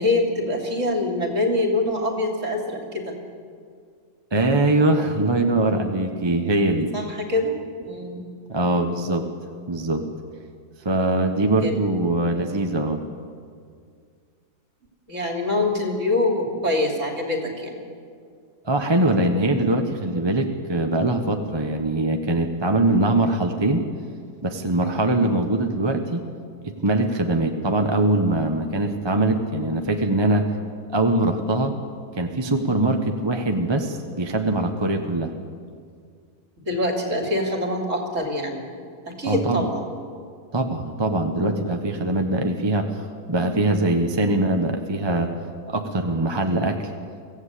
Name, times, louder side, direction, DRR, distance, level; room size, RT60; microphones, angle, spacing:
voice 1, 0.0-3.2 6.9-8.2 11.6-11.9 15.1-17.8 36.7-38.7 39.1-39.9, left 2 dB, 50° right, 2 dB, 3.4 m, -25 dB
voice 2, 4.3-6.9 8.5-9.3 9.7-10.1 10.8-13.0 18.6-23.8 24.4-26.2 26.6-30.5 30.9-31.7 32.2-35.3 39.2-39.6 40.5-45.3 45.7-46.9, right 2 dB, 20° right, 4 dB, 1.1 m, -22 dB
24.0 x 16.0 x 8.4 m, 2.2 s
omnidirectional pair, 1.6 m